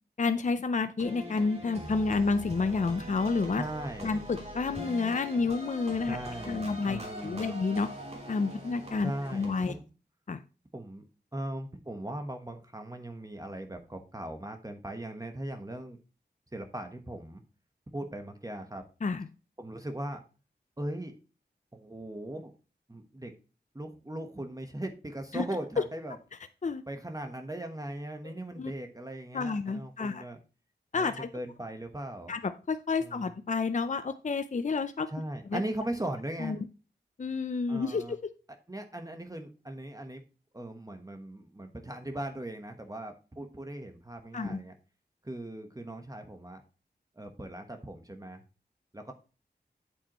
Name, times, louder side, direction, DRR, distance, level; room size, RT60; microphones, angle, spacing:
voice 1, 0.2-3.6 4.0-6.2 6.5-7.9 8.3-9.7 10.3-10.4 19.0-19.3 25.3-25.4 25.8-25.9 26.6-26.8 28.6-28.7 29.3-30.3 30.9-31.3 32.3-35.1 35.5-35.6 36.4-36.6 37.2-38.3 44.3-44.6, left 4 dB, 45° left, 10 dB, 0.6 m, -30 dB
sound 1, 1.0-9.7, equal, 40° right, 3.0 m, -42 dB
voice 2, 3.5-4.2 6.0-7.6 9.0-9.8 10.7-11.1 11.3-16.0 16.5-17.4 17.9-18.8 19.6-20.2 20.8-21.1 21.7-22.5 22.9-23.3 23.7-26.2 26.9-30.4 30.9-32.3 33.0-33.3 35.1-36.6 37.7-38.1 38.7-40.2 40.5-44.7 45.2-46.6 47.2-48.4 48.9-49.1, right 1 dB, 20° right, 5 dB, 1.2 m, -39 dB
8.5 x 7.8 x 3.0 m, 0.34 s
wide cardioid pair, 80°, 17 cm